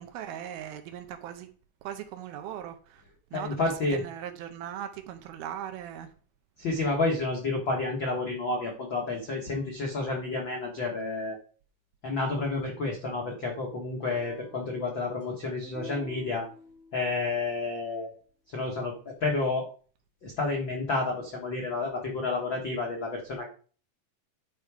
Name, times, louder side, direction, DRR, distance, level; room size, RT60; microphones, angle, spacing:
voice 1, 0.0-1.5 1.8-3.0 3.3-6.1, right 10 dB, 80° right, 2.5 m, -39 dB
voice 2, 3.3-4.0 6.6-11.4 12.0-16.4 16.9-18.1 18.5-19.7 20.2-23.5, left 3 dB, 70° left, 1.1 m, -30 dB
sound 1, 14.0-17.4, left 1 dB, 5° right, 1.8 m, -48 dB
10.5 x 4.7 x 4.9 m
omnidirectional pair, 4.7 m